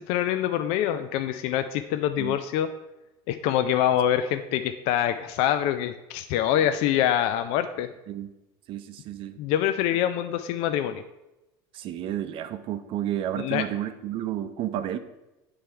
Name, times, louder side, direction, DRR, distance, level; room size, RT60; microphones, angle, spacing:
voice 1, 0.0-2.7 3.3-7.9 9.4-11.0 13.4-13.6, left 11 dB, 65° left, 9 dB, 0.4 m, -25 dB
voice 2, 8.7-9.4 11.7-15.0, right 11 dB, 50° right, 10 dB, 0.6 m, -31 dB
8.6 x 3.4 x 4.3 m, 1.0 s
supercardioid pair, 115°, 11 cm